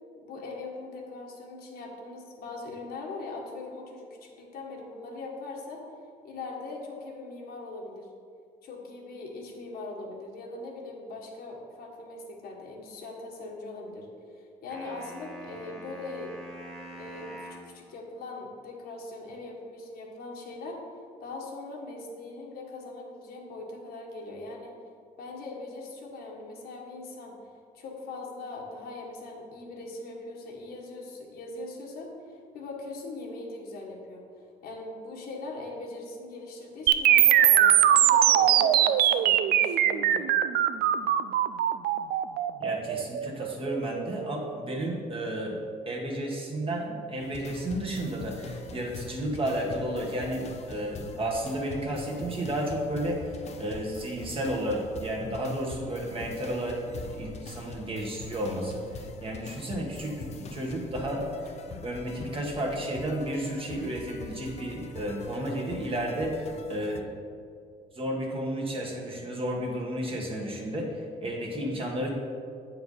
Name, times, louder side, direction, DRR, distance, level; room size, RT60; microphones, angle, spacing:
voice 1, 0.2-5.8 6.2-8.1 8.6-14.1 14.3-16.4 16.9-20.8 21.2-24.7 25.2-27.3 27.7-34.2 34.6-40.4, left 3 dB, 65° left, -1 dB, 1.5 m, -41 dB
sound 1, 14.7-17.7, right 1 dB, ahead, 1.7 m, -44 dB
sound 2, 36.9-44.8, right 11 dB, 65° right, 0.4 m, -22 dB
voice 2, 42.6-45.6 45.8-66.3 66.7-67.0 67.9-72.1, right 1 dB, 35° right, -1 dB, 1.6 m, -32 dB
sound 3, 47.2-67.0, left 4 dB, 40° left, 0.6 m, -43 dB
8.0 x 4.6 x 5.4 m, 2.3 s
cardioid pair, 110°, 17 cm